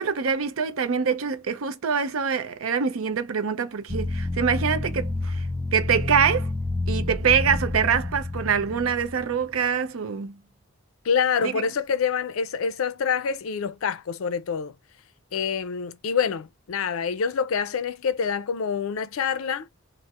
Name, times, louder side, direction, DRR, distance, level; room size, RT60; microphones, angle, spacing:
voice 1, 0.0-5.4 5.7-6.5 6.9-10.4 11.4-11.5, right 6 dB, 90° right, 0.5 m, -24 dB
sound 1, 3.9-9.6, left 2 dB, 10° left, 0.3 m, -29 dB
voice 2, 11.0-14.7 15.3-19.7, left 6 dB, 85° left, 0.4 m, -26 dB
4.3 x 2.0 x 2.3 m
head